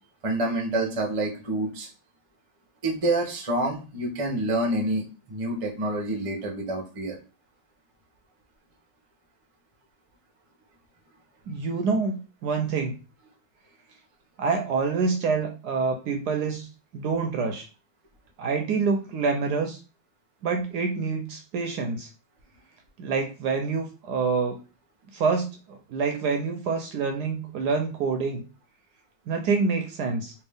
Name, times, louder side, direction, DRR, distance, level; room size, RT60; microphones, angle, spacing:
voice 1, 0.2-1.9 2.8-7.2, right 1 dB, 45° right, 1 dB, 0.4 m, -27 dB
voice 2, 11.5-12.9 14.4-16.7 16.9-17.7 18.4-19.8 20.4-22.1 23.0-24.5 25.1-28.4 29.3-30.3, right 4 dB, 75° right, 4 dB, 1.0 m, -26 dB
3.5 x 2.8 x 3.4 m, 0.33 s
omnidirectional pair, 2.1 m